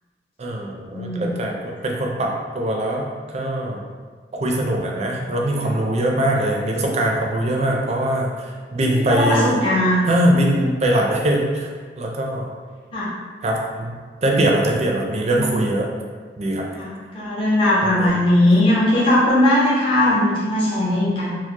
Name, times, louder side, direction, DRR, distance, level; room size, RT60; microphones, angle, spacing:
voice 1, 0.4-3.8 4.3-9.6 10.1-11.7 12.0-12.5 13.4-15.9 16.4-16.7 17.8-18.1, right 1 dB, 35° right, 0 dB, 0.4 m, -22 dB
voice 2, 0.9-1.3 5.6-5.7 9.1-10.3 12.9-13.1 15.3-15.6 16.7-21.4, left 1 dB, 30° left, -9 dB, 0.7 m, -19 dB
4.3 x 2.1 x 2.9 m, 1.6 s
head